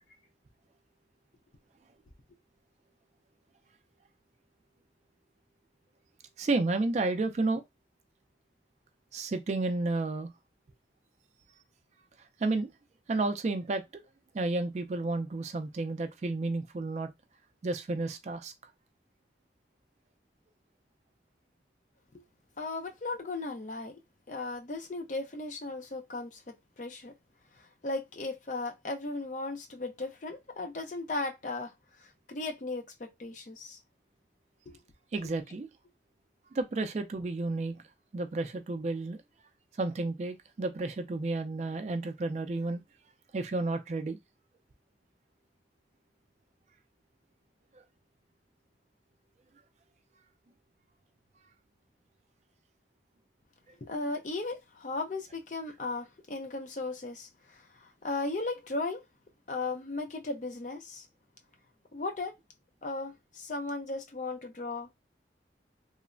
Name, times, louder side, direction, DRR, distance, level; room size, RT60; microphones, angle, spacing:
voice 1, 6.4-7.6 9.1-10.3 12.4-12.7 13.1-14.0 14.3-17.1 17.6-18.5 35.1-35.7 36.5-37.8 38.1-39.2 39.8-42.8 43.3-44.2, right 2 dB, 40° right, 0.3 m, -31 dB
voice 2, 22.6-23.9 24.3-27.1 27.8-31.7 32.3-33.8 34.7-34.8 53.8-59.0 59.5-61.1 61.9-62.3 62.8-64.9, left 3 dB, 45° left, 0.5 m, -36 dB
3.1 x 2.0 x 2.4 m
head